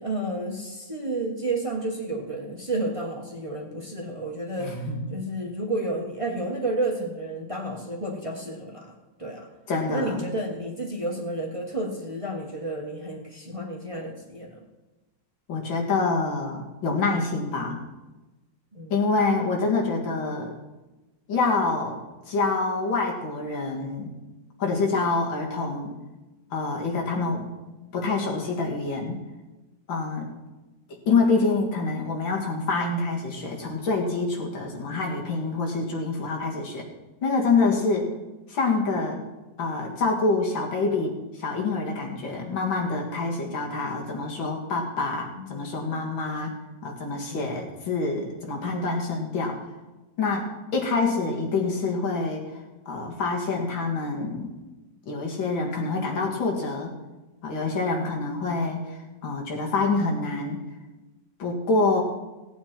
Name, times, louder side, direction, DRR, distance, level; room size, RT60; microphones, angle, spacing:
voice 1, 0.0-8.9 9.2-9.5 9.9-14.6 18.7-18.9 45.3-45.7 47.3-47.4, right 2 dB, 20° right, 0 dB, 1.4 m, -31 dB
voice 2, 4.6-5.1 9.7-10.3 15.5-17.8 18.9-20.5 21.3-21.9 22.3-24.1 24.6-25.9 26.5-27.5 27.9-29.2 29.9-30.3 31.1-36.9 37.2-38.1 38.5-39.2 39.6-46.5 46.8-49.6 50.2-50.5 50.7-52.4 52.9-54.5 55.1-56.9 57.4-60.6 61.4-62.0, left 3 dB, 85° left, 0 dB, 2.7 m, -26 dB
16.5 x 8.8 x 4.5 m, 1.1 s
omnidirectional pair, 2.1 m